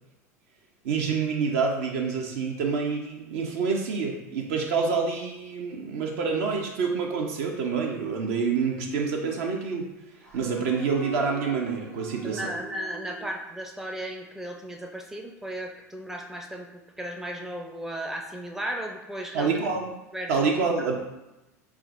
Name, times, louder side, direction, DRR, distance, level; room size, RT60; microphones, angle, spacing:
voice 1, 0.8-9.9 10.3-12.5 19.3-19.9 20.3-21.0, right 5 dB, 60° right, 1 dB, 0.7 m, -27 dB
sound 1, 8.0-8.7 10.2-13.3, right 4 dB, 85° right, 1.0 m, -43 dB
voice 2, 12.2-19.6 20.1-20.5, right 1 dB, 5° right, 2 dB, 0.5 m, -35 dB
5.8 x 2.3 x 2.5 m, 0.96 s
hypercardioid pair, 80°, 9 cm